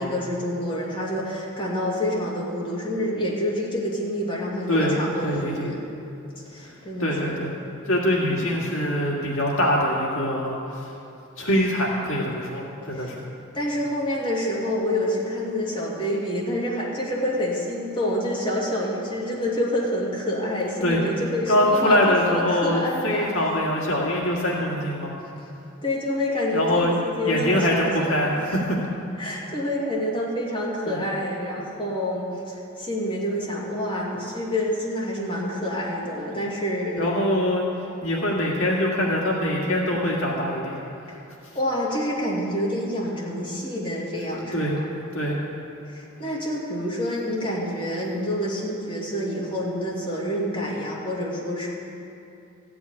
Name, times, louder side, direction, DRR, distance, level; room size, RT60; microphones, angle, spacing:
voice 1, 0.0-5.8 6.5-7.4 12.9-13.1 13.5-23.4 25.8-28.6 29.2-37.1 41.5-44.9 45.9-51.7, left 1 dB, 25° left, -5 dB, 2.6 m, -27 dB
voice 2, 5.2-5.7 6.6-6.7 7.0-7.5 7.9-10.9 11.4-13.2 20.8-21.0 21.5-25.1 26.5-28.8 30.9-31.0 37.0-37.7 38.0-40.8 41.1-41.2 44.5-44.8 45.1-45.4, left 1 dB, 65° left, -3 dB, 1.9 m, -23 dB
14.5 x 6.2 x 9.5 m, 2.6 s
head